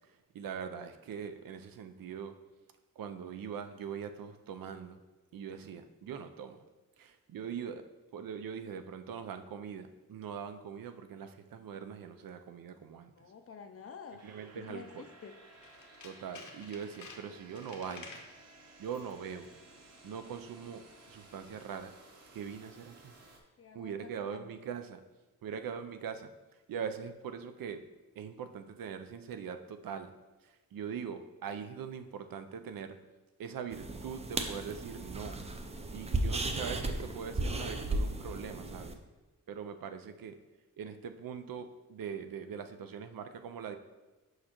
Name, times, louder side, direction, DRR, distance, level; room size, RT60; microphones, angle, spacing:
voice 1, 0.3-2.3 3.0-5.0 5.3-6.6 7.0-7.8 8.1-13.1 14.2-15.0 16.0-18.2 18.8-19.5 20.0-20.8 21.1-21.9 22.3-23.1 23.7-25.0 25.4-26.3 26.7-27.8 28.2-30.1 30.4-33.0 33.4-35.4 35.9-38.9 39.5-40.3 40.8-43.8, right 7 dB, 90° right, 8 dB, 0.5 m, -42 dB
voice 2, 13.1-14.2 14.6-14.9 15.2-15.3 23.6-24.5, left 6 dB, 45° left, 6 dB, 0.5 m, -49 dB
sound 1, 14.2-23.4, right 2 dB, 50° right, 0.9 m, -57 dB
Tools, 15.5-18.3 18.8-19.2 19.4-19.5, left 4 dB, 60° left, 0.8 m, -51 dB
sound 2, 33.7-38.9, right 2 dB, 20° right, 0.4 m, -35 dB
6.5 x 5.0 x 2.9 m, 1.1 s
wide cardioid pair, 125°, 33 cm